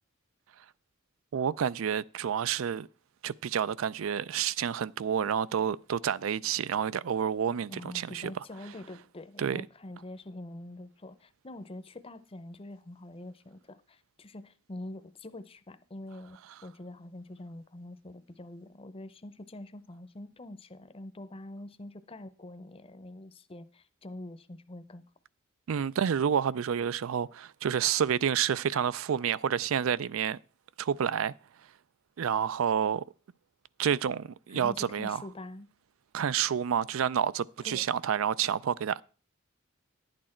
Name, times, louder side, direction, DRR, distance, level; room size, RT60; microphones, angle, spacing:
voice 1, 1.3-2.9 3.2-8.3 9.4-9.6 25.7-30.4 30.8-31.3 32.2-33.0 33.8-35.2 36.1-39.0, right 8 dB, 75° right, 0.4 m, -29 dB
voice 2, 7.7-25.0 34.5-35.7 37.6-37.8, left 1 dB, 25° left, 0.6 m, -45 dB
11.0 x 8.8 x 4.3 m
head